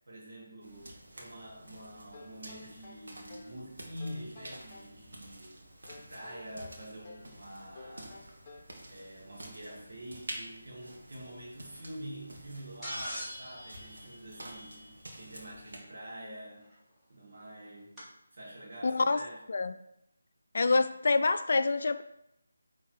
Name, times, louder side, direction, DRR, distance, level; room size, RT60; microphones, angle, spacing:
voice 1, 0.1-5.6 5.9-16.7 17.1-18.1 18.3-19.4, equal, 55° right, -4 dB, 2.1 m, -46 dB
sound 1, 0.6-15.8, right 1 dB, 75° right, 1.8 m, -49 dB
sound 2, 2.1-3.6 4.0-5.0 5.9-7.3 7.7-8.8, left 3 dB, 25° left, 1.2 m, -52 dB
sound 3, 12.8-15.1 16.7-16.8 18.0-18.1, equal, 5° right, 2.1 m, -42 dB
voice 2, 18.8-19.2 19.5-19.7 20.5-22.0, left 3 dB, 55° left, 10 dB, 0.4 m, -26 dB
8.6 x 3.7 x 4.7 m, 0.80 s
figure-of-eight pair, 160°, 0 cm